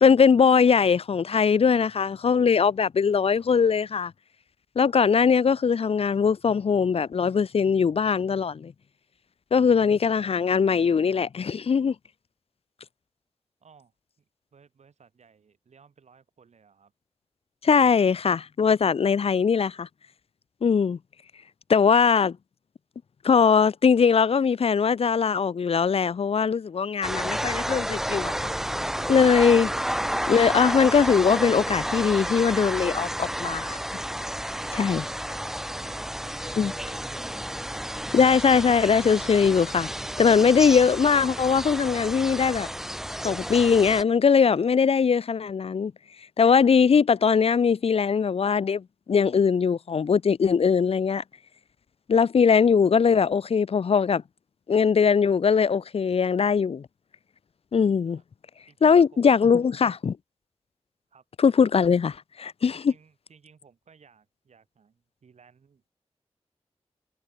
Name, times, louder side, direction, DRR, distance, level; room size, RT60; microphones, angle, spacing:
voice 1, 0.0-4.1 4.8-8.7 9.5-11.9 17.6-19.9 20.6-21.0 21.7-22.4 23.2-28.3 29.1-29.7 30.3-33.8 34.7-35.0 36.6-36.7 38.1-39.9 40.2-42.7 43.2-45.9 46.4-48.8 49.1-51.2 52.1-54.2 54.7-56.9 57.7-58.2 58.8-60.2 61.4-62.9, left 6 dB, 60° left, 0.4 m, -21 dB
voice 2, 13.6-16.9 34.7-37.4 58.1-58.2 58.6-59.2 61.1-61.3 62.7-65.8, right 6 dB, 90° right, 7.4 m, -58 dB
sound 1, 27.0-44.0, equal, 5° right, 0.4 m, -31 dB
cardioid pair, 45°, 11 cm